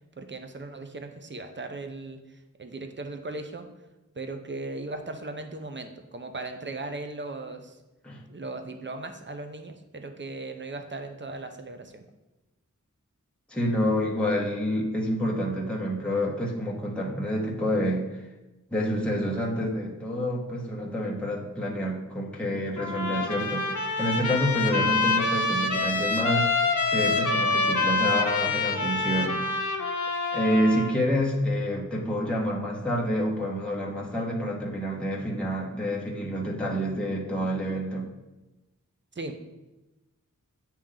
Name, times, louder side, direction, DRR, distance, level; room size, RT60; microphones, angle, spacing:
voice 1, 0.2-2.2 2.6-3.7 4.2-7.8 8.3-12.0 39.2-39.4, right 2 dB, 35° right, 6 dB, 0.6 m, -37 dB
voice 2, 13.5-18.1 18.7-26.5 26.9-29.5 30.3-38.1, equal, 5° left, -3 dB, 1.0 m, -28 dB
Trumpet, 22.8-31.0, left 3 dB, 70° left, 0.7 m, -26 dB
8.7 x 2.9 x 3.7 m, 1.0 s
wide cardioid pair, 60°, 31 cm